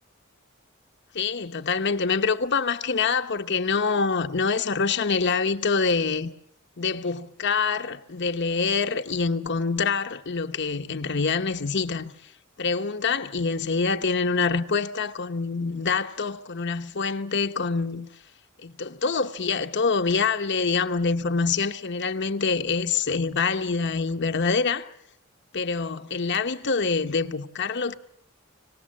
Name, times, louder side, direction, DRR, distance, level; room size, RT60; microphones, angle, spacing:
voice 1, 1.1-6.3 6.8-12.3 12.6-18.1 18.6-24.9 25.5-28.0, left 4 dB, 55° left, 1.0 m, -25 dB
25.0 x 18.5 x 7.5 m
head